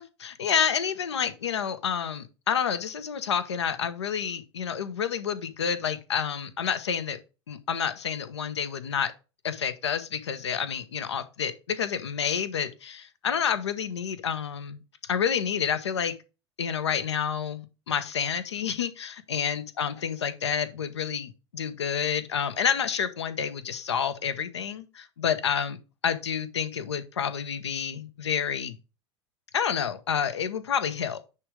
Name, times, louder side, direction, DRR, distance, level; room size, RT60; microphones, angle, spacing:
voice 1, 0.0-7.2 7.5-9.1 9.4-14.8 15.1-16.1 16.6-25.8 26.0-28.8 29.5-31.2, left 7 dB, 70° left, 0.9 m, -29 dB
9.7 x 3.5 x 5.1 m
figure-of-eight pair, 80°, 15 cm